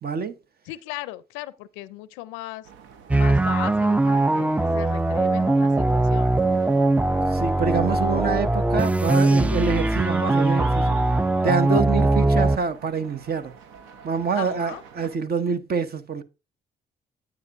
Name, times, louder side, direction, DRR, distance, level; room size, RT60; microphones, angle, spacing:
voice 1, 0.0-0.4 7.3-11.0 11.4-13.5 14.0-16.2, right 5 dB, 55° right, 0.9 m, -26 dB
voice 2, 0.7-2.7 3.1-6.4 14.3-14.8, left 17 dB, 90° left, 0.4 m, -37 dB
sound 1, 2.6-15.2, right 6 dB, 85° right, 0.8 m, -48 dB
sound 2, 3.1-12.6, right 2 dB, 5° right, 0.3 m, -21 dB
9.4 x 8.3 x 2.5 m
hypercardioid pair, 50°, 19 cm